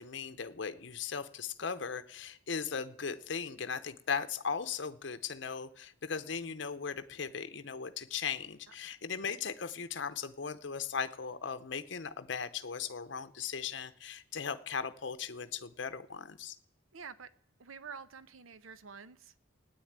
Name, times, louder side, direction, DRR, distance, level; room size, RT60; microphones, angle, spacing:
voice 1, 0.0-16.6, left 6 dB, 60° left, 10 dB, 0.7 m, -38 dB
voice 2, 16.9-17.3 17.6-19.3, right 6 dB, 85° right, 14 dB, 0.7 m, -48 dB
16.0 x 9.6 x 8.7 m, 0.72 s
head